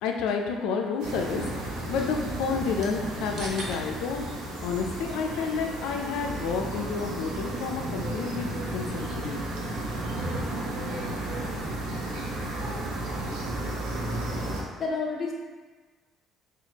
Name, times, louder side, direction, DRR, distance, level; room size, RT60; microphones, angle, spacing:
voice 1, 0.0-4.3 4.6-9.4, left 5 dB, 90° left, 2 dB, 0.3 m, -30 dB
sound 1, 1.0-14.6, right 1 dB, 85° right, 0.7 m, -33 dB
sound 2, 1.1-11.8, right 2 dB, 45° right, 0.5 m, -49 dB
voice 2, 13.9-15.3, left 4 dB, 25° left, -2 dB, 0.5 m, -33 dB
4.3 x 2.4 x 2.8 m, 1.3 s
cardioid pair, 170°, 0 cm